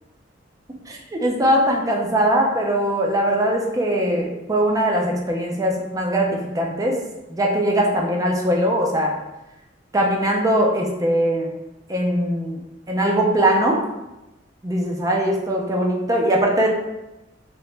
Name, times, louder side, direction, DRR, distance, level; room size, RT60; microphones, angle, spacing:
voice 1, 0.9-7.0 7.3-9.1 9.9-11.5 11.9-12.6 12.9-13.8 14.6-16.7, right 1 dB, 20° right, 0 dB, 0.4 m, -21 dB
2.8 x 2.1 x 3.1 m, 0.98 s
head